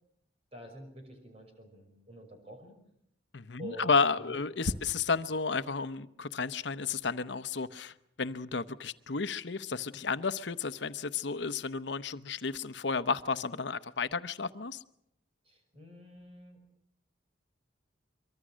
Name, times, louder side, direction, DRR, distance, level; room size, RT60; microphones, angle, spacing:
voice 1, 0.5-2.8 3.6-4.0 4.3-4.8 15.4-16.6, right 1 dB, 30° right, 4 dB, 5.7 m, -47 dB
voice 2, 3.3-14.8, left 4 dB, 70° left, 14 dB, 0.9 m, -32 dB
24.5 x 24.0 x 6.3 m, 0.74 s
head